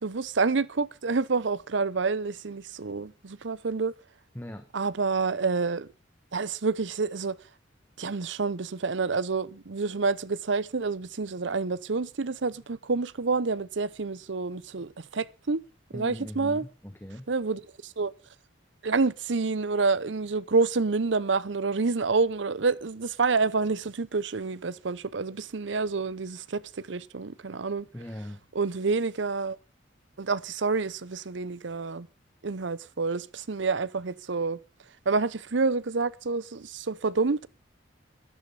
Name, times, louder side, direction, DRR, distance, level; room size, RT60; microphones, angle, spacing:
voice 1, 0.0-3.9 4.7-5.9 6.3-7.4 8.0-15.6 15.9-16.7 17.3-18.1 18.8-27.9 28.5-29.6 30.2-32.1 32.4-34.6 35.1-37.5, right 4 dB, 70° right, 0.7 m, -28 dB
voice 2, 4.3-4.7 15.9-17.3 27.9-28.4, left 1 dB, 10° left, 1.2 m, -40 dB
13.0 x 11.0 x 5.6 m
head